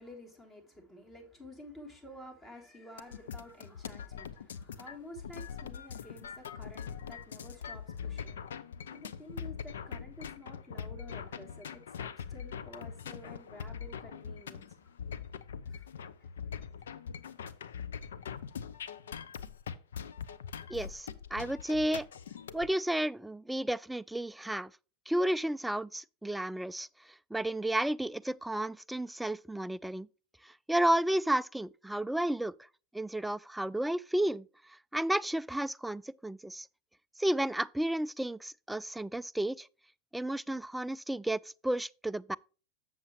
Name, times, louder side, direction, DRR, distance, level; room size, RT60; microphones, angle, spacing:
voice 1, 0.0-8.6 8.9-14.7 15.7-15.9 16.2-16.3, left 1 dB, 20° left, 3.5 m, -51 dB
sound 1, 3.0-22.7, left 7 dB, 85° left, 0.6 m, -42 dB
voice 2, 20.7-22.1 22.5-24.7 25.1-26.9 27.3-30.1 30.7-32.5 32.9-34.5 34.9-36.7 37.2-39.7 40.1-42.4, right 1 dB, 5° right, 0.3 m, -32 dB
8.0 x 7.2 x 3.2 m
hypercardioid pair, 95°, 0 cm